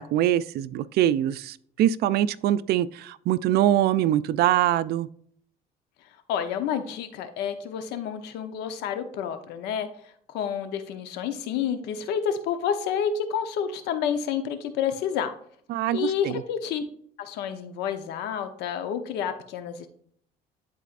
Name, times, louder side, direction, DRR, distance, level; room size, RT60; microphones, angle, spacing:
voice 1, 0.0-5.1 15.7-16.4, right 12 dB, 70° right, 0.4 m, -23 dB
voice 2, 6.3-9.9 10.3-15.3 15.9-16.8 17.2-19.9, left 8 dB, 90° left, 0.8 m, -29 dB
11.5 x 4.2 x 2.5 m
cardioid pair, 110°, 17 cm